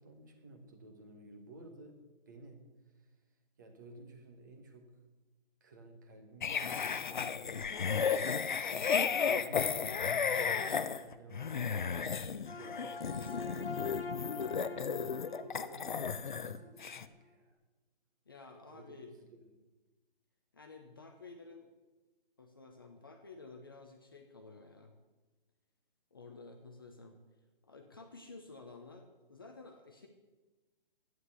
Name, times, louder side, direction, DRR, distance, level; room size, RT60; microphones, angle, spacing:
voice 1, 0.0-2.6 3.0-3.1 3.6-4.9 5.6-7.9 8.4-13.6 14.4-17.6 18.7-19.4, right 2 dB, 20° right, 5 dB, 1.1 m, -54 dB
sound 1, 6.4-16.6 16.8-17.1, left 6 dB, 55° left, 0.8 m, -34 dB
sound 2, 12.4-16.7, left 4 dB, 80° left, 1.5 m, -45 dB
voice 2, 13.0-13.7 18.3-19.2 20.5-21.7 22.4-24.9 26.1-27.2 27.6-30.1, left 3 dB, 25° left, 4 dB, 0.7 m, -52 dB
11.5 x 9.5 x 8.1 m, 1.2 s
hypercardioid pair, 175°, 29 cm